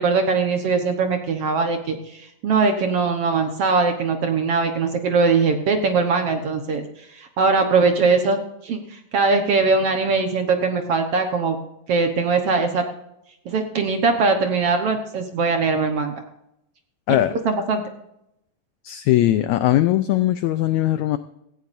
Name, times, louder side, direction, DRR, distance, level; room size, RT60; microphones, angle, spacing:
voice 1, 0.0-6.8 7.1-11.6 11.9-12.8 13.5-16.2 17.5-17.8, right 4 dB, 60° right, 5 dB, 1.7 m, -21 dB
voice 2, 18.8-21.2, left 14 dB, 90° left, 12 dB, 1.6 m, -19 dB
17.0 x 16.0 x 2.6 m, 0.80 s
omnidirectional pair, 3.9 m